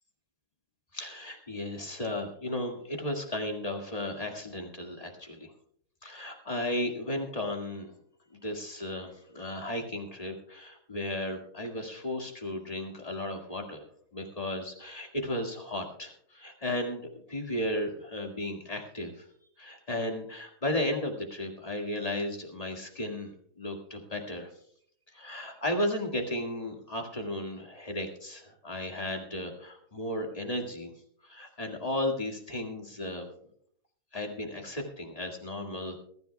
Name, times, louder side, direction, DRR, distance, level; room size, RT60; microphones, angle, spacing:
voice 1, 0.9-5.5 6.0-7.9 8.4-13.8 14.1-19.3 19.6-24.5 25.1-30.9 31.2-33.3 34.1-36.0, left 1 dB, 25° left, 2 dB, 2.0 m, -34 dB
22.0 x 13.5 x 2.3 m, 0.64 s
omnidirectional pair, 1.7 m